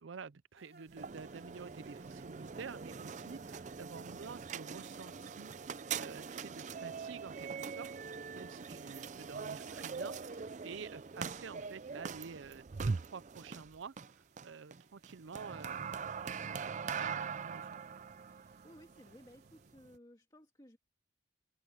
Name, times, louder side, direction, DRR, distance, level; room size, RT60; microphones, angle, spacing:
voice 1, 0.0-5.5 6.0-7.9 8.3-13.9 14.4-17.8, right 5 dB, 90° right, 0.6 m, -49 dB
sound 1, 0.5-19.7, right 3 dB, 55° right, 2.9 m, -68 dB
sound 2, 0.9-20.0, right 5 dB, 40° right, 0.4 m, -42 dB
voice 2, 18.3-20.8, equal, 20° left, 1.9 m, -59 dB
open air
head